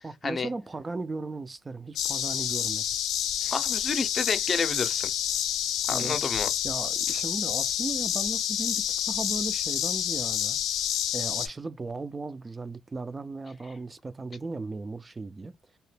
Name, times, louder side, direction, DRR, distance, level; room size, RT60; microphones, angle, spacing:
voice 1, 0.0-2.8 5.9-6.2 6.6-10.6 11.1-15.5, right 3 dB, 25° right, 0.4 m, -36 dB
sound 1, 2.0-11.5, left 10 dB, 85° left, 0.4 m, -28 dB
voice 2, 3.4-5.1 5.9-6.5, left 4 dB, 40° left, 0.6 m, -30 dB
2.8 x 2.1 x 3.2 m
cardioid pair, 90°, 0 cm